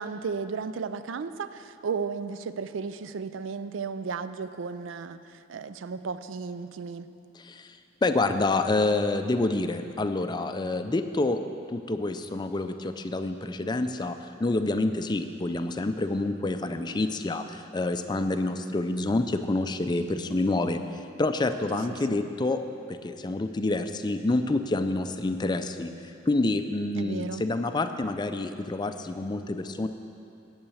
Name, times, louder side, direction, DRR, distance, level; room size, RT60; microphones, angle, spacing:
voice 1, 0.0-7.1 22.1-22.2 27.0-27.4, right 5 dB, 80° right, 12 dB, 0.4 m, -34 dB
voice 2, 7.4-11.4 11.7-22.6 22.9-25.9 26.3-29.9, left 2 dB, 20° left, 8 dB, 0.4 m, -28 dB
8.9 x 8.7 x 7.1 m, 2.6 s
head